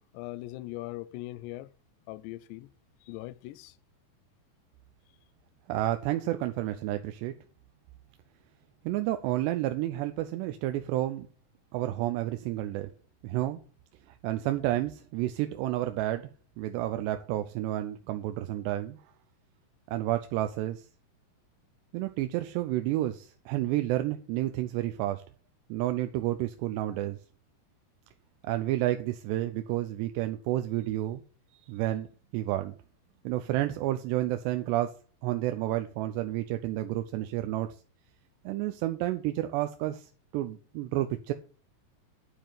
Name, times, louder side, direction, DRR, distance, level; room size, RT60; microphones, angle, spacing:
voice 1, 0.0-1.7 2.1-2.7 3.1-3.7, left 17 dB, 90° left, 2.8 m, -40 dB
voice 2, 5.7-7.3 8.8-11.3 11.7-12.9 13.2-13.6 14.2-16.3 16.6-19.0 19.9-20.8 21.9-25.2 25.7-27.2 28.4-31.2 31.5-32.1 32.3-32.7 33.2-34.9 35.2-37.7 38.5-41.3, right 14 dB, 90° right, 2.9 m, -30 dB
11.5 x 5.2 x 7.5 m
omnidirectional pair, 4.8 m